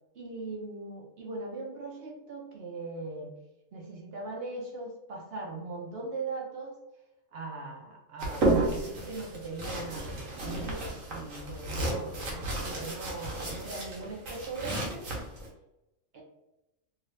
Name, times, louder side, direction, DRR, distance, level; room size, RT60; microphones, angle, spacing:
voice 1, 0.2-3.3 3.7-6.8 7.3-15.1 16.1-16.2, right 3 dB, 55° right, -1 dB, 0.9 m, -40 dB
sound 1, 8.2-15.5, right 2 dB, 75° right, 1.2 m, -32 dB
2.8 x 2.7 x 3.1 m, 0.92 s
omnidirectional pair, 1.4 m